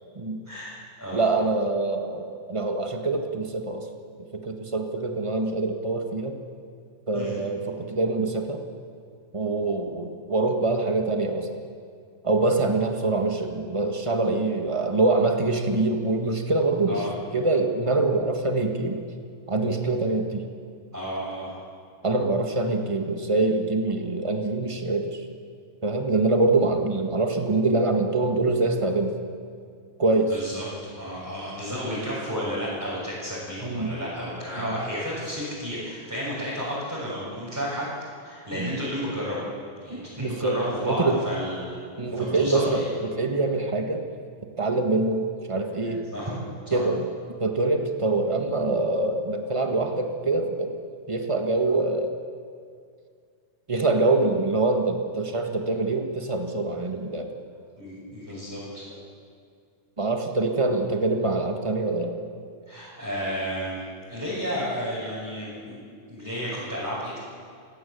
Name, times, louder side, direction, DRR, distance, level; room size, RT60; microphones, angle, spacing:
voice 1, 1.1-3.9 4.3-6.4 7.1-8.6 9.3-11.5 12.2-17.1 17.3-19.0 19.5-20.4 22.0-25.2 25.8-29.2 30.0-30.4 33.6-34.0 34.6-34.7 38.5-38.7 39.9-41.2 42.0-44.1 44.6-46.0 46.7-47.1 47.4-50.7 51.1-52.2 53.7-57.3 60.0-62.2, right 2 dB, 50° right, 4 dB, 0.3 m, -25 dB
voice 2, 20.9-21.6 30.3-30.6 30.9-37.9 38.2-39.4 39.8-42.9 46.1-46.3 46.6-46.8 57.8-58.9 62.7-63.8 64.1-65.8 66.1-67.2, equal, 5° right, -9 dB, 6.5 m, -32 dB
29.5 x 17.0 x 8.5 m, 2.2 s
omnidirectional pair, 3.6 m